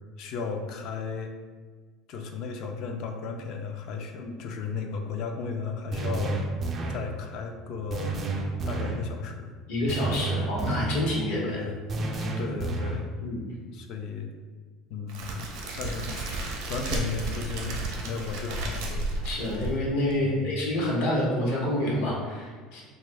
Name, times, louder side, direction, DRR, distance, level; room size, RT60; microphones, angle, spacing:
voice 1, 0.2-1.3 2.1-6.4 6.9-8.2 8.7-9.5 11.4-11.8 12.4-13.1 13.7-14.3 14.9-19.0 20.2-20.5, left 5 dB, 50° left, 4 dB, 0.4 m, -35 dB
sound 1, 5.9-7.1 7.9-9.1 9.9-11.1 11.9-13.1, right 3 dB, 30° right, 0.3 m, -30 dB
voice 2, 9.7-11.6 12.1-12.3 13.2-13.5 19.2-22.8, left 1 dB, 75° left, -4 dB, 1.0 m, -28 dB
Crackle, 15.1-20.1, right 2 dB, 70° right, 0.6 m, -33 dB
2.9 x 2.3 x 3.2 m, 1.5 s
cardioid pair, 155°, 0 cm